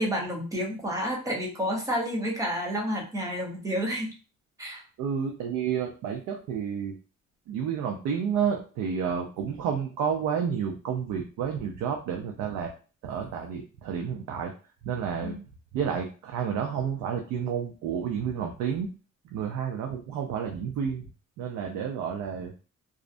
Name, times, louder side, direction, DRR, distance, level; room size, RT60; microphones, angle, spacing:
voice 1, 0.0-4.1 4.6-4.8 15.2-15.4, equal, 10° right, -2 dB, 0.6 m, -30 dB
voice 2, 5.0-7.0 7.5-12.7 13.0-14.5 14.8-15.3 15.7-18.9 19.3-21.1 21.4-22.5, right 7 dB, 80° right, 2 dB, 0.5 m, -30 dB
2.5 x 2.1 x 2.5 m, 0.35 s
cardioid pair, 175°, 29 cm